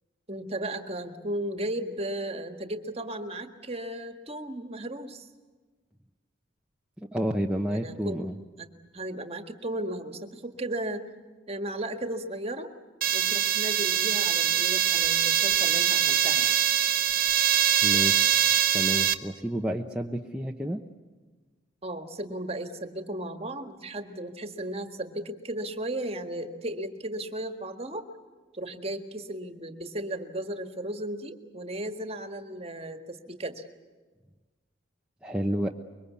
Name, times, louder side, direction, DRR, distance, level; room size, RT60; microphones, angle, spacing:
voice 1, 0.3-5.3 7.7-8.3 8.6-8.7 8.9-11.0 11.5-12.7 13.1-16.6 21.8-28.0 28.5-33.6, right 1 dB, 30° right, 6 dB, 1.8 m, -35 dB
voice 2, 7.0-8.3 17.8-18.4 18.7-20.8 35.2-35.7, equal, 5° right, 0 dB, 0.9 m, -30 dB
sound 1, 13.0-19.1, right 10 dB, 45° right, 1.0 m, -23 dB
25.5 x 23.0 x 8.4 m, 1.4 s
head